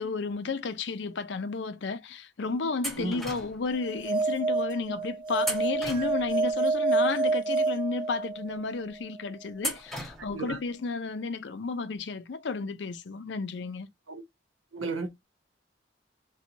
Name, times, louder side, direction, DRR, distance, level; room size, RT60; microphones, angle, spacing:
voice 1, 0.0-13.9, left 4 dB, 65° left, 0.5 m, -32 dB
sound 1, 2.8-3.7 5.4-6.5 9.6-10.5, equal, ahead, 0.7 m, -36 dB
sound 2, 3.8-8.6, right 3 dB, 25° right, 0.3 m, -28 dB
voice 2, 14.7-15.2, right 3 dB, 85° right, 0.9 m, -34 dB
4.4 x 2.2 x 2.6 m
head